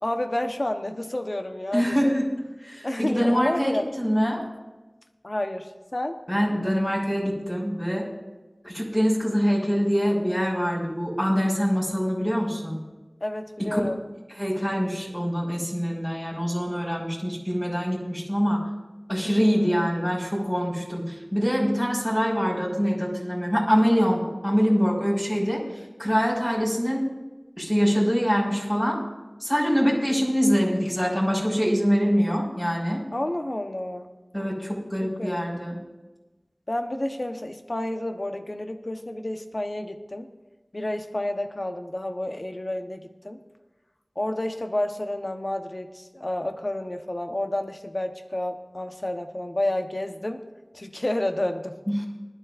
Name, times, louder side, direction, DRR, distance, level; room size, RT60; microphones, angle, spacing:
voice 1, 0.0-2.1 2.8-3.9 5.2-6.2 13.2-14.0 19.2-19.7 33.1-34.1 35.0-35.5 36.7-40.3 40.7-43.4 44.2-50.4 50.7-51.8, left 1 dB, 55° left, 5 dB, 1.1 m, -30 dB
voice 2, 1.7-2.3 2.6-4.4 6.3-8.1 8.6-12.8 13.6-13.8 14.3-18.7 19.1-27.1 27.6-29.0 29.4-33.0 34.3-35.8 51.9-52.0, equal, 25° left, -5 dB, 4.9 m, -24 dB
20.5 x 12.0 x 2.6 m, 1.2 s
wide cardioid pair, 40°, 0 cm